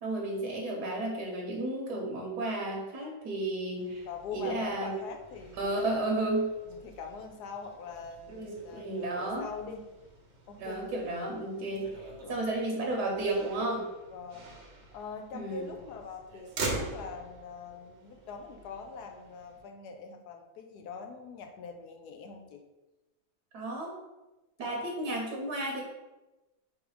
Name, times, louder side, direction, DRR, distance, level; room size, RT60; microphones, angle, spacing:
voice 1, 0.0-4.0 4.3-5.0 5.6-6.5 8.3-9.5 10.6-13.9 15.3-15.6 23.5-23.9 24.6-25.8, right 2 dB, 80° right, -1 dB, 1.4 m, -33 dB
voice 2, 3.8-6.0 6.7-9.8 10.5-10.9 12.2-12.5 14.1-14.6 14.9-22.6 24.6-24.7, left 5 dB, 80° left, 4 dB, 1.2 m, -43 dB
Motor vehicle (road), 3.8-19.6, right 3 dB, 55° right, 0.9 m, -45 dB
3.6 x 3.1 x 4.8 m, 1.1 s
omnidirectional pair, 1.7 m